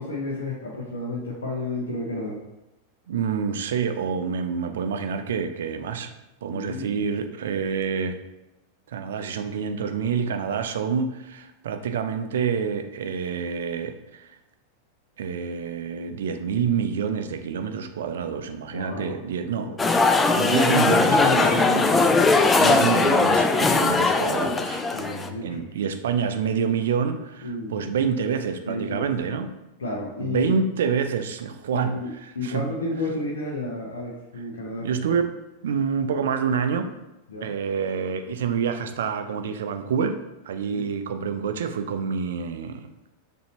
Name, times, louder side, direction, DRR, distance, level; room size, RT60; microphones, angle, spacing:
voice 1, 0.0-2.4 6.5-7.0 18.7-19.1 19.6-19.7 21.0-22.4 24.9-25.6 27.4-27.9 28.6-29.1 29.8-30.5 31.7-34.9 37.3-37.5 40.7-40.9, left 2 dB, 70° left, -3 dB, 0.7 m, -31 dB
voice 2, 3.1-6.1 6.4-8.2 8.9-14.3 15.2-19.7 20.3-21.6 22.6-24.8 25.4-29.5 30.2-32.7 34.8-36.9 37.4-40.2 40.4-42.9, right 6 dB, 60° right, 8 dB, 0.4 m, -27 dB
sound 1, 19.8-25.3, left 3 dB, 15° left, 0.3 m, -20 dB
6.4 x 2.7 x 2.9 m, 0.98 s
figure-of-eight pair, 90°, 0 cm